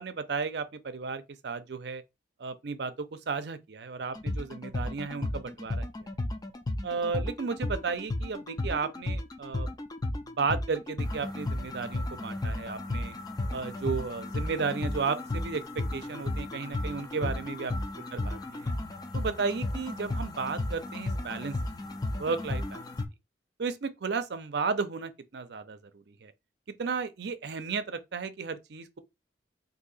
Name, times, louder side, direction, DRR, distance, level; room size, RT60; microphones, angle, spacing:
voice 1, 0.0-2.0 2.4-5.8 6.8-9.7 10.4-13.1 13.5-18.7 19.1-21.6 22.2-22.9 23.6-26.3 26.8-29.0, right 5 dB, 65° right, 0.5 m, -34 dB
sound 1, 4.1-23.1, left 2 dB, 20° left, 0.4 m, -34 dB
2.8 x 2.7 x 4.0 m
head